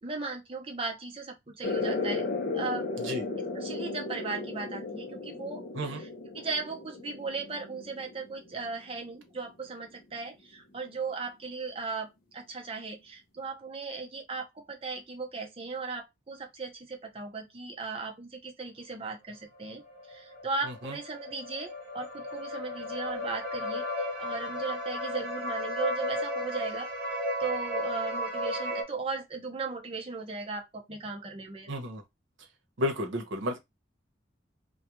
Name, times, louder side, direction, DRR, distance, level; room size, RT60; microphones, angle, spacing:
voice 1, 0.0-2.3 2.5-2.9 3.5-6.1 6.3-19.8 20.1-26.9 27.4-31.7, right 4 dB, 30° right, 0.6 m, -37 dB
sound 1, 1.6-8.8, left 3 dB, 50° left, 0.5 m, -35 dB
sound 2, 19.5-28.8, left 1 dB, 50° right, 0.9 m, -34 dB
voice 2, 31.7-32.0 32.8-33.6, left 1 dB, 85° right, 0.7 m, -32 dB
2.3 x 2.2 x 2.9 m
head